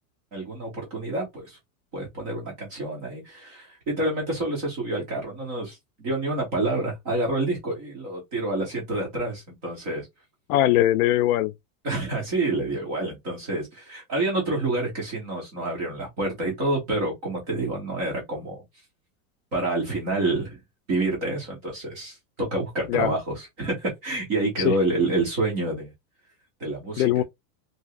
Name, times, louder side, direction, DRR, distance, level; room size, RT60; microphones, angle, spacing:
voice 1, 0.3-1.6 1.9-10.1 11.8-18.6 19.5-20.6 20.9-25.9 26.6-27.2, right 2 dB, 15° right, 0.3 m, -28 dB
voice 2, 10.5-11.5 22.9-23.1 24.6-24.7 27.0-27.2, left 13 dB, 70° left, 0.6 m, -20 dB
2.7 x 2.7 x 3.1 m
supercardioid pair, 170°, 46 cm